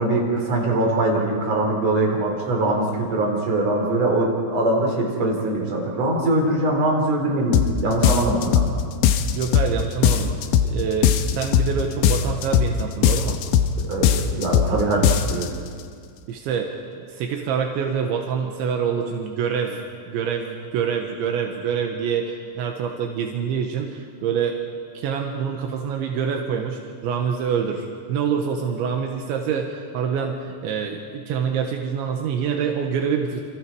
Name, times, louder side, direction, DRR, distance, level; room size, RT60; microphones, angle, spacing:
voice 1, 0.0-8.7 13.9-15.5, right 2 dB, 35° right, -1 dB, 4.9 m, -22 dB
sound 1, 7.5-7.7 8.0-8.7 9.0-9.7 10.0-10.7 11.0-11.7 12.0-12.7 13.0-13.7 14.0-14.7 15.0-15.5, left 9 dB, 90° left, 3.4 m, -18 dB
voice 2, 9.4-10.3 10.6-13.4 16.3-16.8 17.1-19.8 20.1-24.6 25.0-33.4, right 7 dB, 80° right, 2 dB, 3.7 m, -26 dB
28.5 x 28.0 x 4.8 m, 2.2 s
omnidirectional pair, 5.3 m